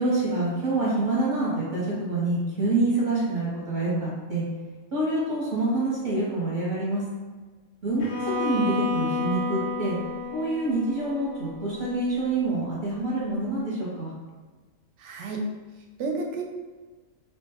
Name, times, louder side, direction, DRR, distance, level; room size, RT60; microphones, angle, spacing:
voice 1, 0.0-4.4 4.9-7.0 7.8-10.0 10.3-14.1, right 2 dB, 45° right, -8 dB, 0.8 m, -26 dB
Bowed string instrument, 8.0-12.0, left 4 dB, 85° left, 1.0 m, -31 dB
voice 2, 15.0-15.5 15.8-16.4, right 3 dB, 70° right, 2 dB, 0.9 m, -31 dB
2.8 x 2.1 x 3.4 m, 1.4 s
omnidirectional pair, 1.3 m